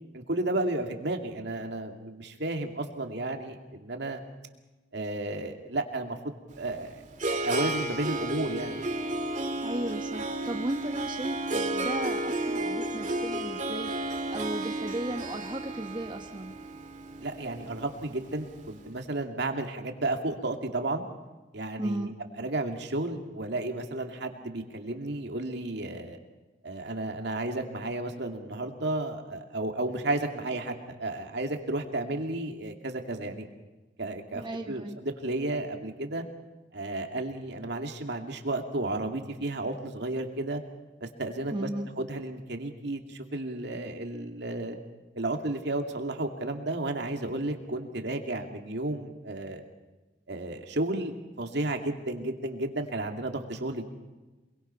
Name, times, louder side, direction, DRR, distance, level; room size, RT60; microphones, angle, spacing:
voice 1, 0.1-4.2 4.9-7.0 7.4-8.8 17.2-21.1 21.5-22.1 22.4-26.2 26.6-33.5 34.0-36.2 36.7-40.6 41.0-41.7 42.0-44.8 45.1-49.7 50.3-53.9, right 2 dB, 65° right, 4 dB, 2.5 m, -33 dB
Harp, 6.5-18.7, right 2 dB, 45° right, 2.1 m, -33 dB
voice 2, 9.6-16.5 21.8-22.1 34.3-35.0 41.5-41.9, right 1 dB, 25° right, 3 dB, 1.1 m, -35 dB
27.0 x 22.5 x 5.7 m, 1.2 s
head